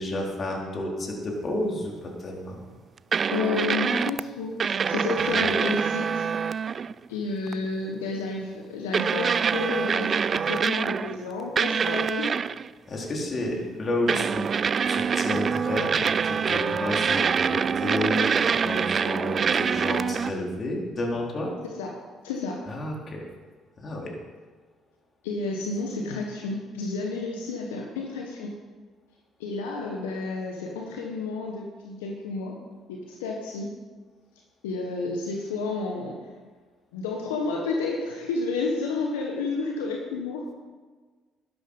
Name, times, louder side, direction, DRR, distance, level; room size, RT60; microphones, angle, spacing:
voice 1, 0.0-2.6 5.2-5.4 12.9-14.5 14.9-21.5 22.7-23.2 23.8-24.1, left 1 dB, 40° left, -1 dB, 3.8 m, -31 dB
sound 1, 3.1-4.2 4.6-6.9 7.5-7.6 8.9-11.2 11.6-12.7 14.1-20.3, right 6 dB, 45° right, 0.3 m, -25 dB
voice 2, 3.3-6.3 7.1-12.3 13.5-13.6 21.8-21.9 22.2-22.6 25.2-28.5 29.4-32.5 32.9-33.7 34.6-36.1 36.9-40.4, left 3 dB, 85° left, 0 dB, 1.3 m, -31 dB
12.5 x 11.5 x 5.5 m, 1.4 s
hypercardioid pair, 55°, 0 cm